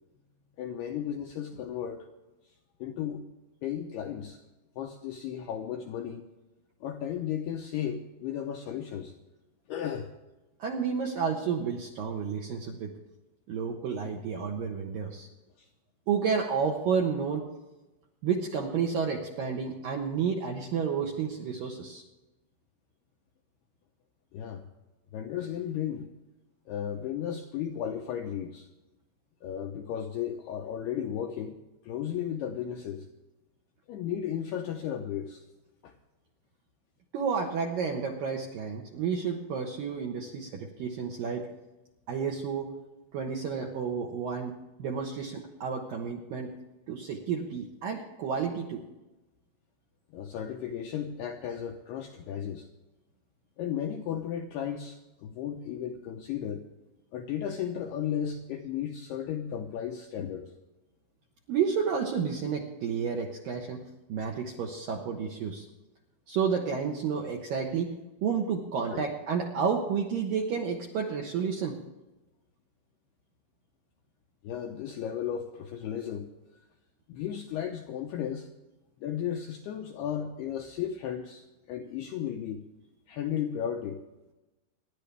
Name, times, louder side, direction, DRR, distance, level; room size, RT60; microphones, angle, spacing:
voice 1, 0.6-2.1 2.8-3.2 3.6-4.4 4.8-6.2 6.8-9.1 9.7-10.1 15.6-15.7 24.3-24.7 25.1-26.1 26.7-28.7 29.4-31.6 31.8-33.1 33.9-35.4 35.8-35.9 50.1-52.7 53.6-56.7 57.1-60.5 68.9-69.0 74.4-76.3 77.1-78.5 79.0-82.6 83.1-84.0, left 9 dB, 80° left, 3 dB, 2.4 m, -34 dB
voice 2, 10.6-12.9 13.5-15.3 16.1-17.5 18.2-22.0 37.1-41.5 42.1-42.7 43.1-46.6 46.9-48.8 61.5-65.7 66.3-68.0 68.2-71.8, right 6 dB, 70° right, 1 dB, 2.1 m, -31 dB
27.5 x 11.0 x 3.4 m, 1.1 s
omnidirectional pair, 5.7 m